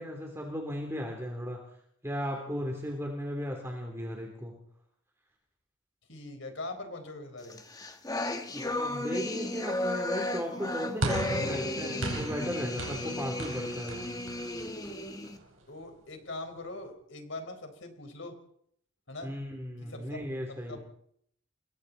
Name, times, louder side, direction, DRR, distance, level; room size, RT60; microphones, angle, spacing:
voice 1, 0.0-1.6 2.0-4.6 8.5-14.1 19.2-20.8, equal, 10° right, 1 dB, 3.3 m, -36 dB
voice 2, 6.1-7.6 15.7-18.4 19.1-19.3 19.8-20.2 20.5-20.8, left 2 dB, 60° left, 6 dB, 4.4 m, -42 dB
sound 1, 7.5-15.4, left 1 dB, 15° left, 1.6 m, -34 dB
sound 2, 11.0-15.4, right 1 dB, 75° right, 4.8 m, -36 dB
29.5 x 22.5 x 4.2 m, 0.69 s
head